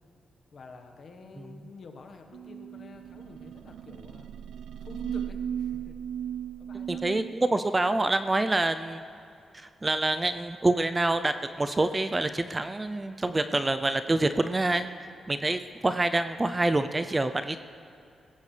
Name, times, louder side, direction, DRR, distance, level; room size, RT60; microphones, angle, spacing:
voice 1, 0.5-4.3 4.8-5.9 6.6-7.0, left 4 dB, 50° left, 4 dB, 1.3 m, -49 dB
sound 1, 2.3-7.3, right 9 dB, 85° right, 0.3 m, -36 dB
voice 2, 6.9-9.0 9.5-17.6, right 2 dB, 15° right, 9 dB, 0.4 m, -27 dB
21.0 x 16.0 x 3.3 m, 2.6 s
wide cardioid pair, 145°, 0 cm